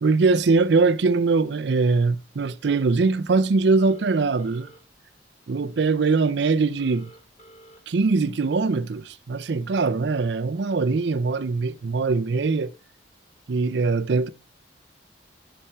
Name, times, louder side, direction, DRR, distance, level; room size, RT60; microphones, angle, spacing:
voice 1, 0.0-4.7 5.5-7.1 7.9-12.7 13.5-14.3, right 4 dB, 65° right, 0.5 m, -22 dB
Telephone, 3.8-4.8 6.8-7.8, equal, 35° left, 2.7 m, -50 dB
11.0 x 5.5 x 3.4 m
head